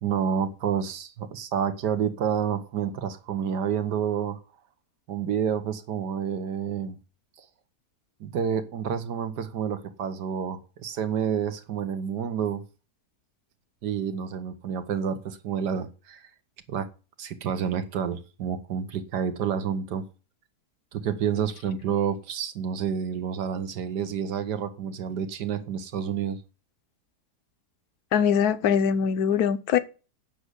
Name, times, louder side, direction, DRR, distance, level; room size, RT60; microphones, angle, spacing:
voice 1, 0.0-4.4 5.1-7.0 8.2-12.6 13.8-16.3 16.7-16.9 17.2-20.0 20.9-26.4, right 8 dB, 85° right, 1.7 m, -29 dB
voice 2, 28.1-29.8, left 8 dB, 70° left, 1.3 m, -22 dB
8.9 x 6.6 x 8.1 m
omnidirectional pair, 1.7 m